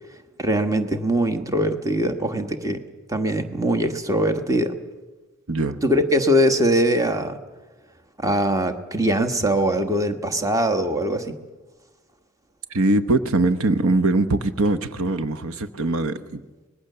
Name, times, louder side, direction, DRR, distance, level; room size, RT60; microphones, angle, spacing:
voice 1, 0.4-2.8 3.1-4.8 5.8-7.4 8.2-11.4, right 1 dB, 15° right, 7 dB, 1.3 m, -22 dB
voice 2, 5.5-5.8 12.7-16.4, right 2 dB, 75° right, 12 dB, 1.0 m, -22 dB
25.0 x 20.5 x 6.8 m, 1.2 s
head